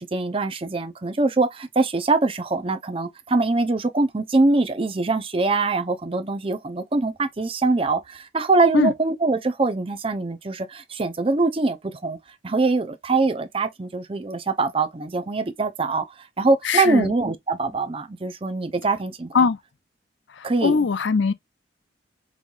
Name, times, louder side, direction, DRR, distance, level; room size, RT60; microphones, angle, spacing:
voice 1, 0.0-12.2 12.4-16.0 16.4-19.3 20.4-20.9, right 3 dB, 30° right, 0.6 m, -23 dB
voice 2, 16.6-17.1 19.3-19.6 20.3-21.3, left 5 dB, 80° left, 0.5 m, -21 dB
5.4 x 3.1 x 2.4 m
head